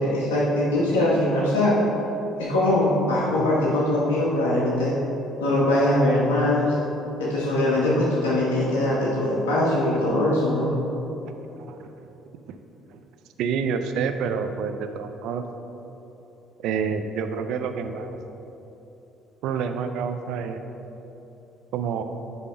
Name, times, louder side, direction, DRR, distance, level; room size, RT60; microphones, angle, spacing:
voice 1, 0.0-1.7 2.4-5.0 5.4-6.7 7.2-10.7, left 1 dB, 90° left, -7 dB, 1.3 m, -22 dB
voice 2, 11.6-11.9 12.5-12.6 12.9-13.0 13.4-15.4 16.6-18.2 19.4-20.6 21.7-22.0, right 6 dB, 70° right, 7 dB, 0.5 m, -28 dB
9.8 x 3.6 x 5.6 m, 3.0 s
supercardioid pair, 65°, 0 cm